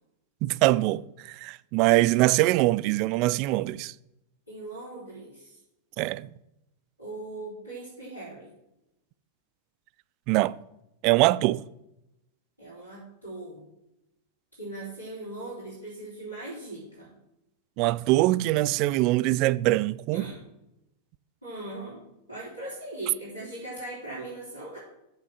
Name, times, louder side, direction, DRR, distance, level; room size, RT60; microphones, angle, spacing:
voice 1, 0.4-3.9 6.0-6.3 10.3-10.6 11.0-11.6 17.8-20.2, right 18 dB, 45° right, 0.3 m, -23 dB
voice 2, 4.5-5.6 7.0-8.5 12.6-13.7 14.6-17.1 20.1-20.4 21.4-24.8, right 2 dB, 90° left, 3.9 m, -39 dB
7.2 x 6.1 x 6.1 m
figure-of-eight pair, 90°, 0 cm